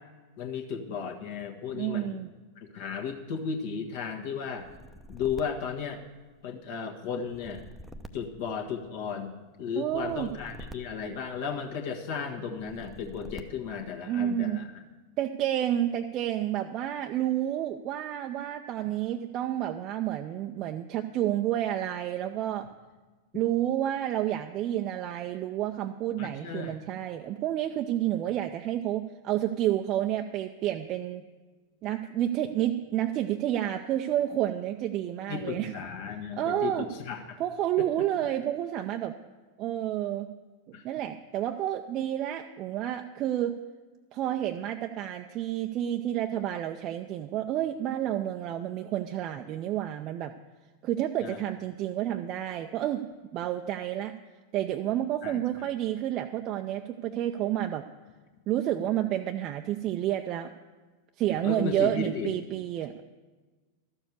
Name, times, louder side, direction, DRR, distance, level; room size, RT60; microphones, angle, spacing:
voice 1, 0.4-2.2 2.6-4.7 5.1-6.0 6.4-7.6 8.1-9.3 9.6-14.7 26.2-26.8 35.3-37.4 37.8-37.9 40.7-40.8 51.2-51.4 55.2-55.7 61.4-62.3, left 6 dB, 50° left, 2 dB, 1.5 m, -35 dB
voice 2, 1.7-2.3 9.8-10.3 14.1-14.7 15.2-22.7 23.3-31.3 31.8-35.7 36.4-36.9 37.4-39.1 39.6-40.3 40.7-43.5 44.1-50.3 50.8-53.0 53.3-54.1 54.5-57.8 58.5-60.5 61.2-63.0, right 12 dB, 35° right, 5 dB, 0.5 m, -30 dB
sound 1, 4.5-6.5 7.2-9.2 9.9-11.8 12.5-13.9, equal, 5° right, 0.7 m, -47 dB
13.0 x 7.2 x 8.3 m, 1.3 s
figure-of-eight pair, 90°, 0 cm